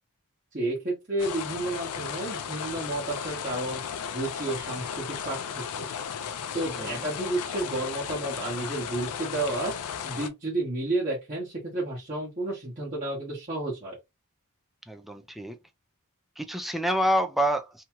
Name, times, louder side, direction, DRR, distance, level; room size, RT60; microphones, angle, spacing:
voice 1, 0.5-3.8 4.1-5.9 6.5-9.7 10.0-14.0, right 2 dB, 35° right, 1.1 m, -31 dB
sound 1, 1.2-10.3, left 7 dB, 90° left, 0.4 m, -35 dB
voice 2, 6.8-7.1 14.9-15.6 16.4-17.8, equal, ahead, 0.3 m, -27 dB
2.8 x 2.3 x 2.9 m
head